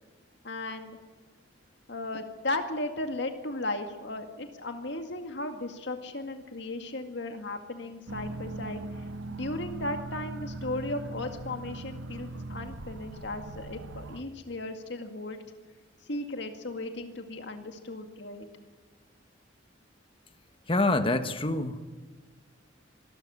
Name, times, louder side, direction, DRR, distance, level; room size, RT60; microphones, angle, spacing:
voice 1, 0.4-1.0 1.9-8.8 9.3-15.4 16.1-18.5, left 2 dB, 65° left, 6 dB, 2.1 m, -36 dB
sound 1, 8.1-14.2, right 2 dB, 85° right, 1.1 m, -40 dB
voice 2, 20.7-21.8, left 2 dB, 30° left, 9 dB, 1.3 m, -26 dB
25.0 x 13.0 x 9.7 m, 1.3 s
head